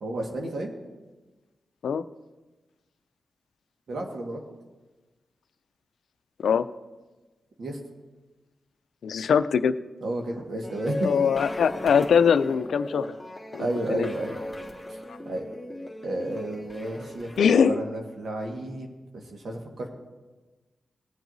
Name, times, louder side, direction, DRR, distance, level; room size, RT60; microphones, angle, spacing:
voice 1, 0.0-0.7 3.9-4.4 7.6-7.8 10.0-11.1 13.6-14.4 14.9-15.0 15.2-15.4 16.0-17.3 17.7-19.9, right 1 dB, 70° right, 1 dB, 1.6 m, -32 dB
voice 2, 9.0-9.7 11.0-13.1 13.5-14.1 15.1-15.2 17.4-17.8, left 6 dB, 80° left, 12 dB, 0.4 m, -22 dB
sound 1, 10.6-17.6, left 1 dB, 5° left, 1.8 m, -38 dB
20.0 x 7.7 x 2.7 m, 1.2 s
cardioid pair, 85°, 0 cm